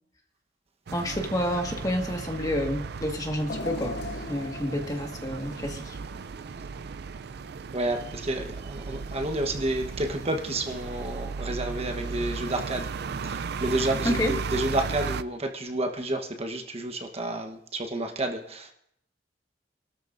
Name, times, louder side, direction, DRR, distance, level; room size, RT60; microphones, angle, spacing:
voice 1, 0.9-4.0 4.3-6.0 14.0-14.4, left 1 dB, 20° left, 2 dB, 1.6 m, -29 dB
sound 1, 0.9-15.2, right 5 dB, 60° right, 0.4 m, -36 dB
sound 2, 3.5-6.6 7.1-7.2 8.2-8.3, left 3 dB, 60° left, 0.9 m, -39 dB
voice 2, 7.7-12.9 13.2-18.7, right 1 dB, 35° right, 4 dB, 1.1 m, -30 dB
27.0 x 13.0 x 2.6 m, 0.73 s
head